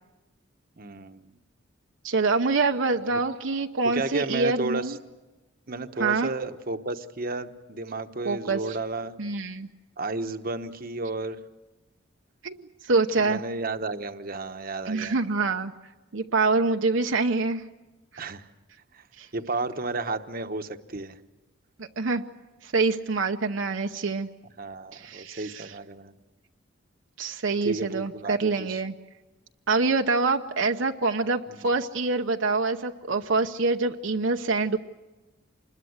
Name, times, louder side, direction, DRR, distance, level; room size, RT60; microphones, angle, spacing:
voice 1, 0.8-1.3 3.1-3.2 3.9-5.0 5.7-9.1 10.0-11.4 13.2-15.2 18.2-18.5 18.9-19.0 19.3-21.2 24.6-26.1 27.6-28.8 31.5-31.6, right 3 dB, 50° right, 8 dB, 1.1 m, -32 dB
voice 2, 2.0-5.0 6.0-6.3 8.2-8.8 9.2-9.7 12.4-13.4 14.9-15.7 16.1-17.7 18.1-18.2 19.2-19.3 21.8-22.2 22.6-24.3 24.9-25.7 27.2-28.9 29.7-34.8, right 3 dB, 70° right, 5 dB, 0.8 m, -25 dB
26.0 x 21.0 x 7.9 m, 1.1 s
head